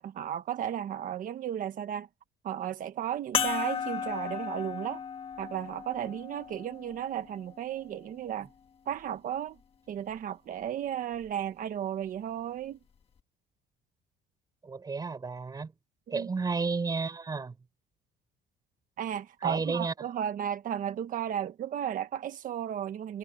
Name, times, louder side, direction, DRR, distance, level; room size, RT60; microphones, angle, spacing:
voice 1, 0.0-2.1 2.4-5.0 5.4-8.5 8.9-9.6 9.9-12.8 16.1-16.3 19.0-23.2, right 10 dB, 50° right, 1.4 m, -34 dB
sound 1, 3.3-8.1 8.9-9.0 11.2-11.3, left 7 dB, 30° left, 1.9 m, -35 dB
voice 2, 14.6-15.7 16.1-17.5 19.4-19.9, right 4 dB, 20° right, 5.1 m, -32 dB
cardioid pair, 155°, 18 cm